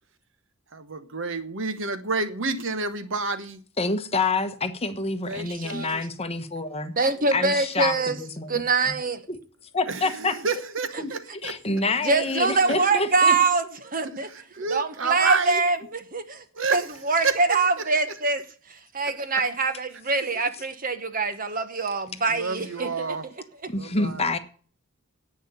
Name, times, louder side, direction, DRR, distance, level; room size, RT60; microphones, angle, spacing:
voice 1, 0.7-3.6 5.3-6.0 9.9-11.6 12.3-12.4 12.6-12.9 14.0-15.6 16.5-17.9 22.3-23.3 23.8-24.3, right 4 dB, 60° right, 1.1 m, -30 dB
voice 2, 3.8-6.9 7.3-8.9 9.7-10.4 11.0-11.1 11.4-13.3 23.7-24.4, left 3 dB, 30° left, 1.2 m, -27 dB
voice 3, 5.5-5.9 7.0-8.2 8.5-9.2 12.0-14.3 14.7-16.4 16.7-18.4 18.7-23.2, right 3 dB, 40° right, 1.2 m, -24 dB
10.5 x 8.8 x 6.9 m
head